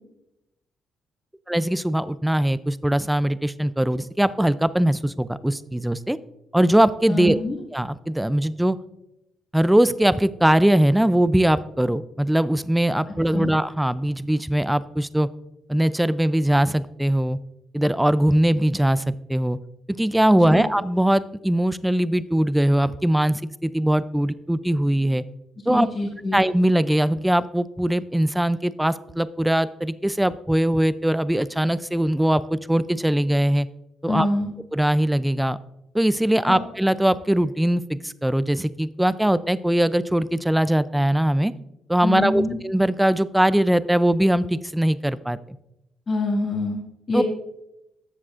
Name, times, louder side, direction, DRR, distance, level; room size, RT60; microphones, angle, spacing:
voice 1, 1.5-6.2 6.5-7.4 7.7-8.8 9.5-15.3 15.7-17.4 17.7-19.6 19.9-25.2 25.7-25.9 26.3-33.7 34.0-34.3 34.7-35.6 35.9-41.5 41.9-45.6 47.1-47.2, right 1 dB, 5° right, 16 dB, 0.4 m, -21 dB
voice 2, 7.1-7.6 13.3-13.5 20.4-20.6 25.7-26.4 34.1-34.5 36.4-36.6 42.0-42.6 46.1-46.8 47.1-47.2, left 2 dB, 40° left, -2 dB, 1.9 m, -25 dB
13.0 x 7.3 x 2.5 m, 0.89 s
cardioid pair, 90°, 0 cm